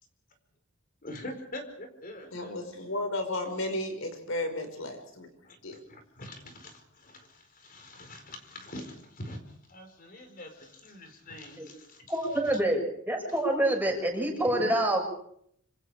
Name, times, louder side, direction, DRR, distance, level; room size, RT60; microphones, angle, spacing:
voice 1, 1.0-2.5 5.4-5.6 5.9-12.6 13.3-13.4 14.5-14.7, left 1 dB, 45° left, 6 dB, 4.7 m, -44 dB
voice 2, 2.3-5.3 5.6-5.8, left 1 dB, 85° left, 6 dB, 5.4 m, -33 dB
voice 3, 12.1-12.8 13.1-15.0, right 1 dB, 10° right, 1 dB, 6.7 m, -26 dB
26.5 x 26.0 x 5.0 m, 0.67 s
head